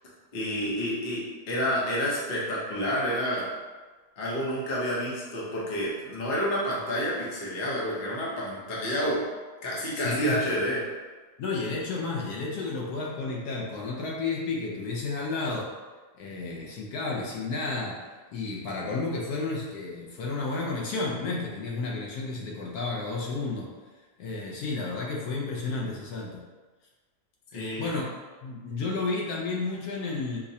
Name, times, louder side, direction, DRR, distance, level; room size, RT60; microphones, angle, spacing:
voice 1, 0.3-3.5 4.2-9.2 9.6-10.8 27.5-28.0, equal, 50° left, -5 dB, 0.9 m, -29 dB
voice 2, 9.9-10.4 11.4-15.7 16.2-18.0 18.3-23.7 24.2-26.4 27.5-28.1 28.4-30.4, left 3 dB, 75° left, -2 dB, 1.1 m, -32 dB
4.7 x 2.1 x 2.7 m, 1.3 s
omnidirectional pair, 1.7 m